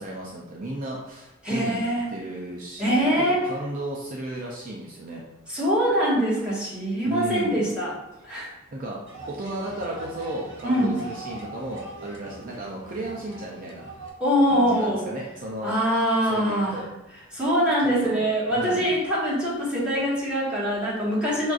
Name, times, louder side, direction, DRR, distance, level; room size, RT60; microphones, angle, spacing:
voice 1, 0.0-1.8 2.1-5.2 7.1-7.6 8.7-13.9 14.5-15.8 16.3-16.9 18.0-18.2 18.5-18.9, right 1 dB, 45° right, -3 dB, 0.5 m, -34 dB
voice 2, 1.4-2.1 2.8-3.4 5.5-7.9 8.2-8.5 10.6-11.0 14.2-15.1 15.6-16.8 17.3-21.5, equal, 5° right, -9 dB, 1.4 m, -23 dB
sound 1, 9.1-14.1, right 2 dB, 65° right, 0.8 m, -41 dB
5.9 x 2.5 x 2.4 m, 0.99 s
head